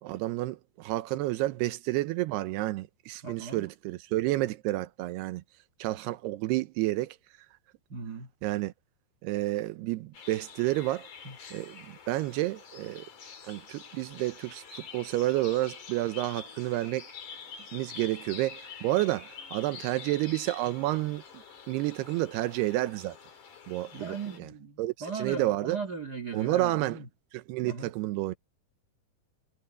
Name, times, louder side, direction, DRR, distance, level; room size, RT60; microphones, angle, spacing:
voice 1, 0.0-5.4 5.8-7.2 8.4-8.7 9.2-11.1 11.5-13.1 13.4-17.1 17.7-23.2 23.7-24.5 24.8-25.8 26.3-27.0 27.3-28.4, right 17 dB, 90° right, 2.9 m, -30 dB
voice 2, 3.2-3.6 7.9-8.3 11.2-11.4 17.6-17.7 23.9-27.1 27.6-27.9, right 4 dB, 65° right, 0.9 m, -38 dB
sound 1, 10.1-24.4, left 6 dB, 50° left, 4.7 m, -47 dB
omnidirectional pair, 4.6 m